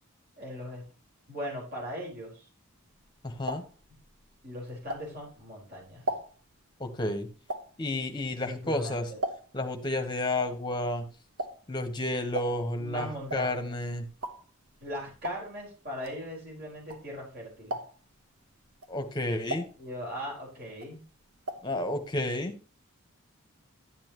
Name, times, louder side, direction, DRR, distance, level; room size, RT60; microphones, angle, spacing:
voice 1, 0.4-0.8 1.3-2.5 4.4-6.0 8.5-9.2 12.7-13.7 14.8-17.8 19.8-21.0, equal, 45° right, -3 dB, 4.7 m, -39 dB
sound 1, 2.9-5.5 5.8-9.8 10.0-17.3 17.6-18.2 18.7-20.4 20.7-21.8 22.0-22.1 22.4-22.5, right 1 dB, 75° right, 1.1 m, -39 dB
voice 2, 3.2-3.6 6.8-7.3 7.8-9.1 9.5-11.0 11.7-14.0 18.9-19.6 21.6-22.6, left 1 dB, 20° left, 6 dB, 1.1 m, -31 dB
11.5 x 8.7 x 3.0 m, 0.34 s
head